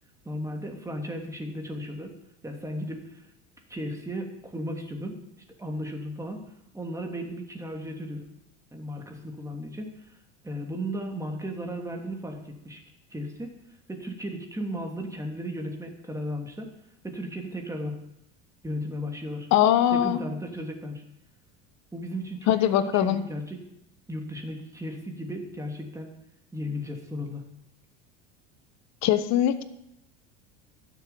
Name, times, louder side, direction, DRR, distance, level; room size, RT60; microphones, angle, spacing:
voice 1, 0.2-2.1 2.4-3.2 3.7-6.4 6.7-8.3 8.7-9.9 10.4-12.8 13.1-13.6 13.9-16.7 17.0-18.0 18.6-19.5 19.9-21.0 21.9-23.6 24.1-26.1 26.5-27.4, equal, 10° right, 2 dB, 2.9 m, -35 dB
voice 2, 19.5-20.2 22.5-23.2 29.0-29.6, left 11 dB, 55° left, 12 dB, 1.2 m, -21 dB
12.0 x 7.4 x 8.6 m, 0.82 s
supercardioid pair, 100°, 33 cm